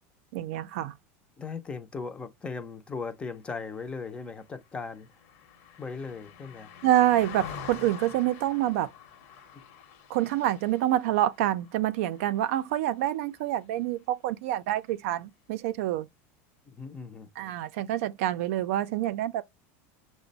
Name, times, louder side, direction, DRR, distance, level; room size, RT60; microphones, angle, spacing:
voice 1, 0.3-0.9 6.8-8.9 10.1-16.1 17.4-19.4, right 13 dB, 65° right, 0.4 m, -27 dB
voice 2, 1.4-5.1 5.8-6.7 16.7-17.3, left 4 dB, 15° left, 0.5 m, -38 dB
Car passing by, 3.8-13.4 13.7-14.0, left 8 dB, 60° left, 0.9 m, -47 dB
5.8 x 2.1 x 3.9 m
supercardioid pair, 160°, 8 cm